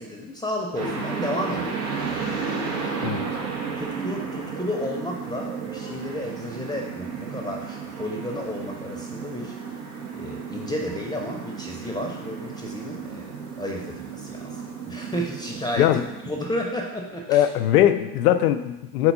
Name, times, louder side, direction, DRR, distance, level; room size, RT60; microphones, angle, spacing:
voice 1, 0.0-1.8 3.7-9.6 10.1-15.9 16.3-17.4, left 1 dB, 10° left, 0 dB, 0.8 m, -32 dB
sound 1, 0.7-16.5, right 5 dB, 65° right, 1.2 m, -33 dB
voice 2, 17.3-19.1, left 12 dB, 65° left, 10 dB, 0.6 m, -20 dB
4.5 x 4.2 x 5.5 m, 0.99 s
figure-of-eight pair, 60°, 48 cm